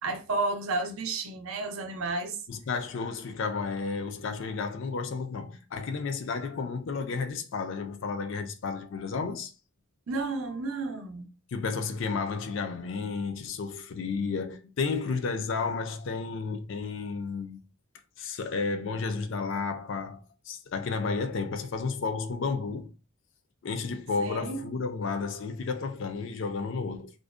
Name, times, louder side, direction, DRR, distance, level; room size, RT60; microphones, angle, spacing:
voice 1, 0.0-2.4 10.1-11.3 24.2-24.7, right 3 dB, 70° right, 0.5 m, -32 dB
voice 2, 2.5-9.5 11.5-17.6 18.2-22.9 23.6-27.1, left 4 dB, 60° left, 0.4 m, -32 dB
2.5 x 2.0 x 2.4 m
head